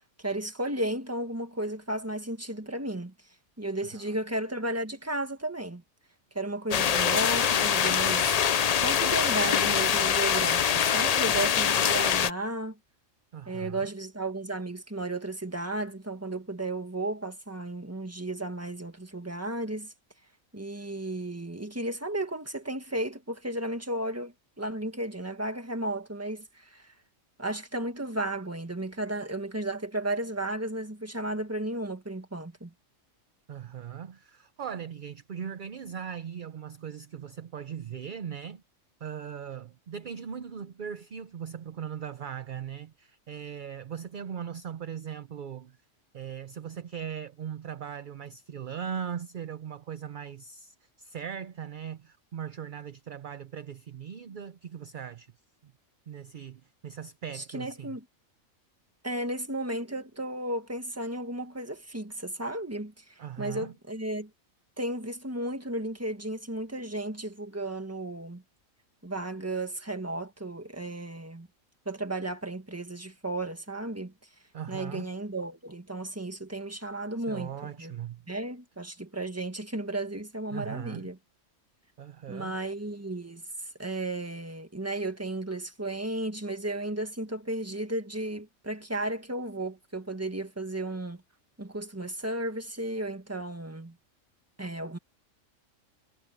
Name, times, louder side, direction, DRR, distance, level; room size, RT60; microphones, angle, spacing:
voice 1, 0.2-3.1 3.6-5.8 6.3-8.3 8.8-12.8 13.5-19.9 20.5-26.9 27.4-32.7 57.3-58.0 59.0-64.3 64.8-68.4 69.0-71.5 71.8-74.1 74.7-77.9 78.3-81.2 82.3-91.2 91.6-93.9 94.6-95.0, right 1 dB, 10° right, 1.6 m, -34 dB
sound 1, 6.7-12.3, left 8 dB, 75° left, 0.3 m, -24 dB
voice 2, 13.3-13.9 33.5-38.6 39.0-45.8 46.1-55.3 55.6-55.7 56.1-58.0 63.2-63.7 74.5-75.1 77.3-78.3 80.5-81.1 82.0-82.6, right 8 dB, 50° right, 0.7 m, -39 dB
omnidirectional pair, 1.4 m